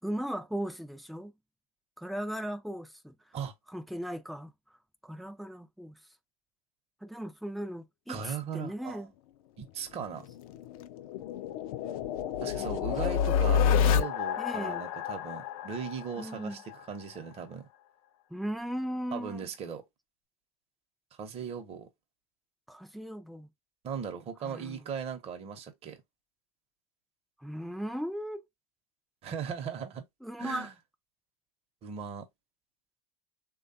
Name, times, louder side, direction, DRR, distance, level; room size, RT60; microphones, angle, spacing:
voice 1, 0.0-1.3 2.0-3.1 3.7-4.5 5.0-6.0 7.0-9.1 14.4-14.9 16.2-16.6 18.3-19.5 22.7-23.5 24.4-24.8 27.4-28.4 30.2-30.7, equal, ahead, 0.4 m, -37 dB
voice 2, 8.1-9.1 9.6-10.2 12.4-17.7 19.1-19.8 21.2-21.9 23.8-26.0 29.2-30.0 30.4-30.7 31.8-32.3, right 7 dB, 30° right, 0.8 m, -38 dB
sound 1, 10.0-16.8, left 8 dB, 65° left, 0.5 m, -29 dB
3.2 x 2.3 x 2.6 m
hypercardioid pair, 110°, 19 cm